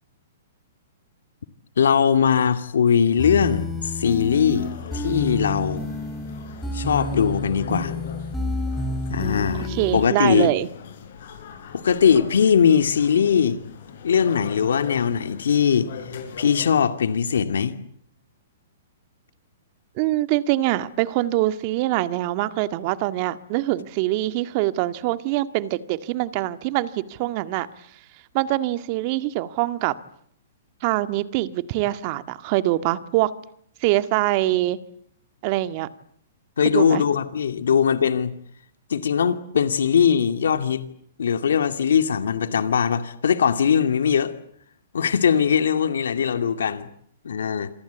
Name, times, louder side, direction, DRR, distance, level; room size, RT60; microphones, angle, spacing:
voice 1, 1.8-5.9 6.7-8.0 9.1-10.5 11.7-13.6 14.0-16.1 16.4-17.7 36.6-38.3 38.9-40.8 41.2-44.3 44.9-46.9 47.2-47.7, left 7 dB, 85° left, 2.4 m, -20 dB
sound 1, 3.2-10.0, left 2 dB, ahead, 5.2 m, -29 dB
sound 2, 4.5-16.8, left 6 dB, 60° left, 7.9 m, -40 dB
voice 2, 9.7-10.7 20.0-27.7 28.3-29.9 30.8-33.3 33.8-34.8 35.4-35.9 36.6-37.0, right 16 dB, 35° right, 1.8 m, -24 dB
27.5 x 24.0 x 8.3 m
hypercardioid pair, 155°, 0 cm